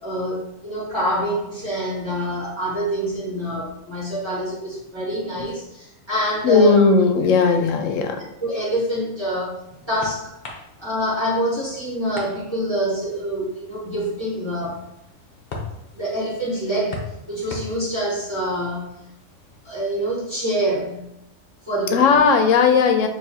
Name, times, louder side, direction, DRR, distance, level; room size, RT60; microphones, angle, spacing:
voice 1, 0.0-6.7 8.4-9.6 9.9-10.3 10.8-14.8 15.9-19.0 19.6-21.1 21.7-22.1, right 1 dB, 20° right, -7 dB, 1.6 m, -26 dB
voice 2, 6.4-8.2 21.9-23.1, left 5 dB, 85° left, 6 dB, 1.0 m, -17 dB
sound 1, 9.3-20.0, left 3 dB, 50° left, 1.0 m, -41 dB
6.8 x 2.8 x 2.8 m, 0.84 s
omnidirectional pair, 1.3 m